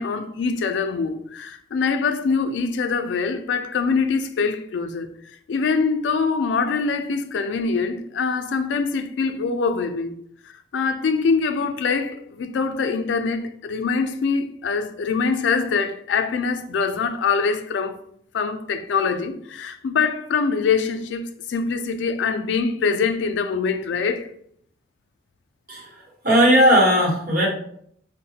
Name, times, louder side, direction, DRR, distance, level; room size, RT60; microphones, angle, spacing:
voice 1, 0.0-5.1 5.5-10.2 10.7-18.0 18.3-24.3, left 5 dB, 80° left, 0.3 m, -24 dB
voice 2, 26.2-27.5, equal, 55° right, 1.0 m, -16 dB
3.9 x 2.1 x 2.7 m
head